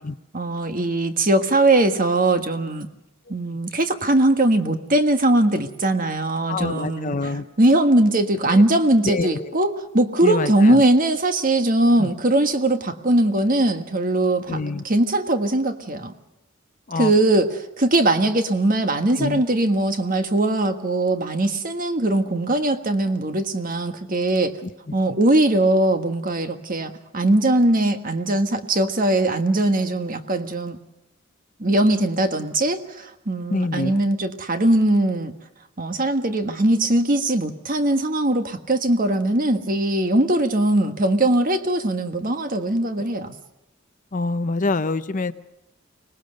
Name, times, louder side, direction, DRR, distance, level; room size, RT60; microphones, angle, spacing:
voice 1, 0.3-2.9 3.3-7.3 7.6-14.6 14.8-16.1 16.9-24.6 24.9-30.8 31.6-35.3 35.8-43.4, right 1 dB, 40° right, 7 dB, 1.5 m, -20 dB
voice 2, 6.5-7.4 8.5-8.6 9.0-9.5 10.2-10.8 12.0-12.1 14.5-14.8 16.9-17.1 19.2-19.4 24.6-24.9 33.5-34.0 43.0-43.1 44.1-45.3, left 3 dB, 40° left, 12 dB, 0.7 m, -26 dB
25.0 x 19.5 x 6.6 m, 0.89 s
head